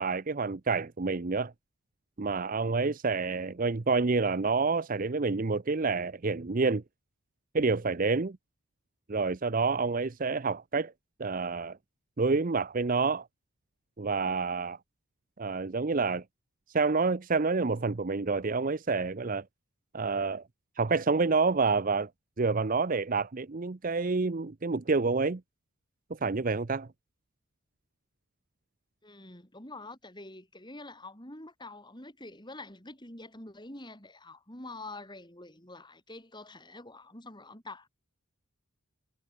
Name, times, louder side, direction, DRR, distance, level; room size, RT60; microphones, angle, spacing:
voice 1, 0.0-1.5 2.2-6.8 7.5-8.4 9.1-10.9 11.2-11.8 12.2-13.3 14.0-14.8 15.4-16.2 16.7-19.4 19.9-20.4 20.8-22.1 22.4-25.4 26.1-26.9, right 4 dB, 35° right, 0.6 m, -28 dB
voice 2, 29.0-37.9, left 2 dB, 20° left, 5.3 m, -46 dB
head